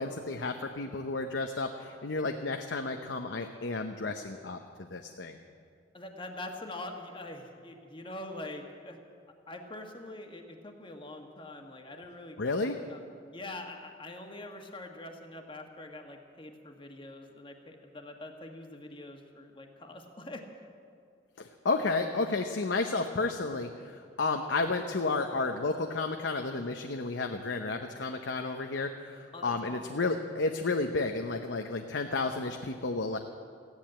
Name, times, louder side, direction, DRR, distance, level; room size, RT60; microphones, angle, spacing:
voice 1, 0.0-5.4 12.4-12.8 21.4-33.2, left 3 dB, 90° left, 5 dB, 0.8 m, -32 dB
voice 2, 5.9-9.0 9.5-12.4 12.9-13.0 13.3-20.4 29.3-29.8, left 2 dB, 30° left, 3 dB, 1.5 m, -44 dB
15.0 x 10.5 x 8.8 m, 2.3 s
head